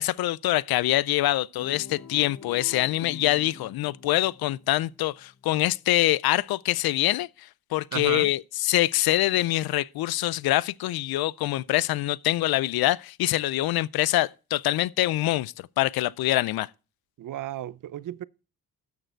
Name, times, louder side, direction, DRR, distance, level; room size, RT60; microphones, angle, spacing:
voice 1, 0.0-7.3 7.7-16.7, left 16 dB, 80° left, 0.5 m, -25 dB
Guitar, 1.6-5.9, left 6 dB, 65° left, 2.0 m, -46 dB
voice 2, 7.9-8.3 17.2-18.2, right 12 dB, 60° right, 0.6 m, -34 dB
13.0 x 6.6 x 4.5 m
cardioid pair, 75°, 36 cm